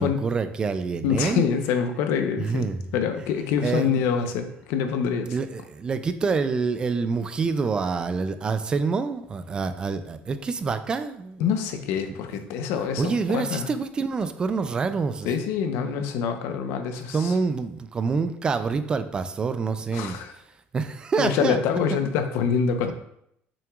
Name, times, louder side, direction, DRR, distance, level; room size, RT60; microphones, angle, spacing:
voice 1, 0.0-1.5 2.4-2.8 3.6-4.0 5.3-11.4 13.0-15.3 17.1-20.2 20.7-21.6, right 4 dB, 20° right, 11 dB, 0.3 m, -26 dB
voice 2, 1.0-2.7 2.9-5.3 11.4-13.7 15.2-17.3 19.9-20.3 21.2-22.9, left 7 dB, 85° left, 7 dB, 0.8 m, -25 dB
7.0 x 5.9 x 2.4 m, 0.72 s
cardioid pair, 170°, 4 cm